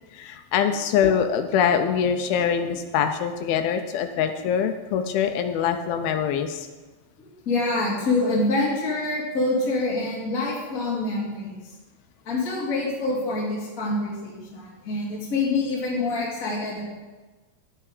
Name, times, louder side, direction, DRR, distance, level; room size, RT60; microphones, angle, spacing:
voice 1, 0.1-6.7, left 8 dB, 80° left, 7 dB, 2.2 m, -24 dB
voice 2, 7.2-11.6 12.2-16.8, left 2 dB, 25° left, -5 dB, 2.1 m, -26 dB
10.5 x 8.9 x 4.9 m, 1.3 s
omnidirectional pair, 4.9 m